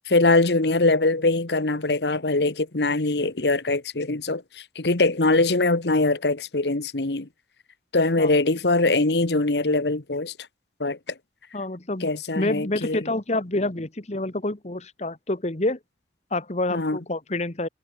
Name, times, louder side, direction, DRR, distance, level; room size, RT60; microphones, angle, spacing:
voice 1, 0.1-7.3 7.9-10.3 10.8-11.0 12.0-13.0 16.7-17.0, left 2 dB, 70° left, 1.4 m, -22 dB
voice 2, 11.5-15.8 16.3-17.7, left 2 dB, 40° left, 1.6 m, -28 dB
head